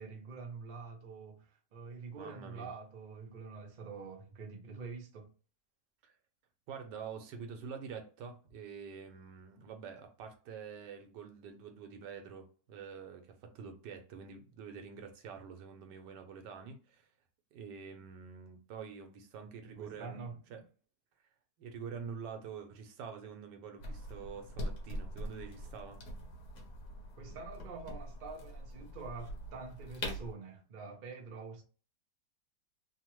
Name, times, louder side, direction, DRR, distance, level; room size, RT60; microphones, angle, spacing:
voice 1, 0.0-5.3 19.7-20.6 27.2-31.6, right 4 dB, 60° right, 0.5 m, -46 dB
voice 2, 2.2-2.7 6.0-6.1 6.7-17.1 17.5-20.2 20.5-20.6 21.6-26.0, right 6 dB, 85° right, 1.3 m, -46 dB
sound 1, 23.8-30.3, equal, 65° left, 1.2 m, -43 dB
3.2 x 2.1 x 3.0 m
omnidirectional pair, 1.8 m